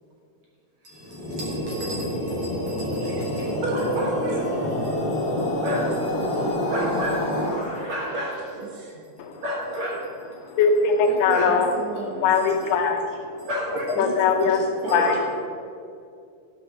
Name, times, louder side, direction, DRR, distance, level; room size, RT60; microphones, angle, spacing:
voice 1, 0.8-6.4 6.7-8.4 8.9-10.3 11.3-11.5 13.4-13.9 14.8-15.2, right 1 dB, 55° right, -4 dB, 2.3 m, -32 dB
sound 1, 0.9-8.3, left 1 dB, 40° left, 2.1 m, -27 dB
voice 2, 3.0-3.5 4.2-5.8 6.1-6.8 7.4-7.5 8.5-9.0 11.1-12.7 13.9-15.3, right 3 dB, 80° right, -3 dB, 4.2 m, -36 dB
voice 3, 10.4-11.7 12.2-13.5 14.0-14.6 14.9-15.2, left 5 dB, 85° left, 4 dB, 3.1 m, -21 dB
11.0 x 7.9 x 6.1 m, 2.5 s
omnidirectional pair, 4.5 m